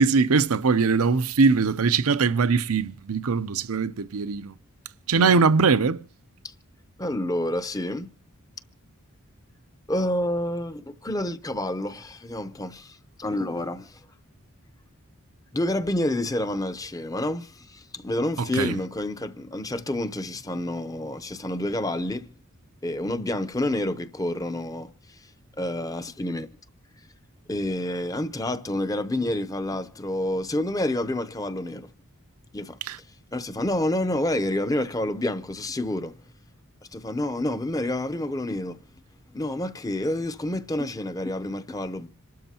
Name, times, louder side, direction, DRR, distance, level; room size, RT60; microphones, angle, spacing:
voice 1, 0.0-4.5 5.1-6.0 18.6-18.8 32.9-33.0, right 4 dB, 75° right, 0.6 m, -21 dB
voice 2, 7.0-8.1 9.9-14.0 15.5-22.3 22.8-24.9 25.6-26.5 27.5-31.9 32.5-32.8 33.3-36.1 36.9-38.8 39.3-42.1, left 1 dB, 15° left, 0.6 m, -28 dB
27.0 x 12.5 x 2.9 m
head